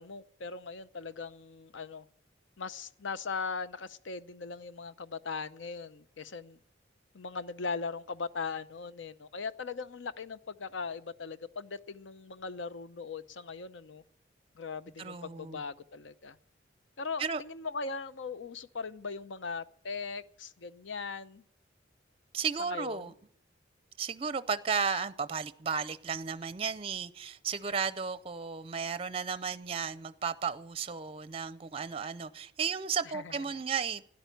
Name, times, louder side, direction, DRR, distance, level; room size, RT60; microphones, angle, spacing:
voice 1, 0.0-2.1 2.6-6.6 7.1-14.0 14.5-16.4 17.0-21.4 22.7-23.1 33.1-33.6, left 4 dB, 80° left, 0.7 m, -39 dB
voice 2, 15.0-15.6 17.2-17.4 22.3-23.1 24.0-34.1, right 6 dB, 30° right, 0.5 m, -34 dB
13.0 x 10.5 x 9.1 m
head